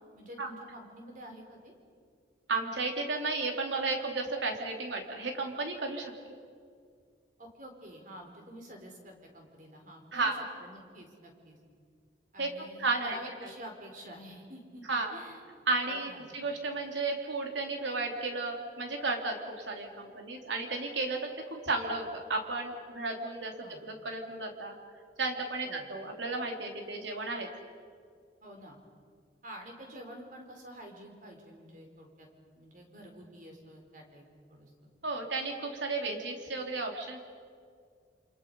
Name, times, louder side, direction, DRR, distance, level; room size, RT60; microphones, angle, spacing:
voice 1, 0.1-1.8 7.4-11.6 12.3-15.4 15.8-16.3 23.6-23.8 25.6-25.9 28.4-28.8 29.4-32.3 32.6-34.9, equal, 45° right, 2 dB, 4.4 m, -48 dB
voice 2, 2.5-6.1 10.1-10.3 12.4-12.5 12.8-13.1 14.9-15.1 15.7-23.5 23.8-24.7 25.2-27.5 35.0-37.2, right 3 dB, 80° right, 2 dB, 3.4 m, -33 dB
28.5 x 27.0 x 5.6 m, 2.1 s
head